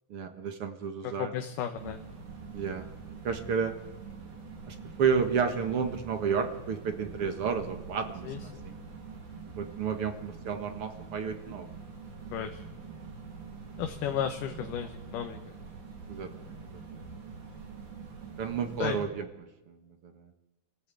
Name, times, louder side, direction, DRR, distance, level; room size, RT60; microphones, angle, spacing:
voice 1, 0.1-1.3 2.5-2.8 3.2-3.7 4.7-8.7 9.6-11.7 14.0-14.2 16.1-16.6 16.9-17.0 18.4-19.3 19.7-20.3, right 6 dB, 50° right, 7 dB, 2.0 m, -31 dB
voice 2, 1.0-2.0 8.3-8.6 12.3-12.6 13.8-15.4 18.8-19.0, left 9 dB, 75° left, 5 dB, 2.6 m, -34 dB
sound 1, 1.8-19.1, right 5 dB, 70° right, 4.8 m, -45 dB
27.5 x 16.0 x 8.4 m, 1.1 s
omnidirectional pair, 3.8 m